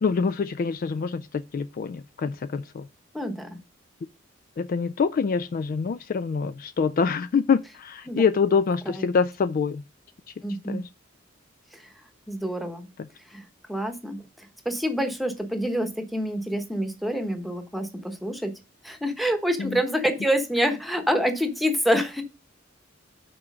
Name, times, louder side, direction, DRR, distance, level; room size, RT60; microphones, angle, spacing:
voice 1, 0.0-2.8 4.6-9.8 10.7-10.9 19.6-19.8, left 5 dB, 45° left, 0.3 m, -25 dB
voice 2, 3.1-3.5 8.1-8.2 8.9-9.0 10.4-10.8 11.7-11.9 12.3-12.9 13.3-18.5 18.8-22.2, equal, ahead, 1.0 m, -27 dB
6.2 x 4.5 x 6.2 m
head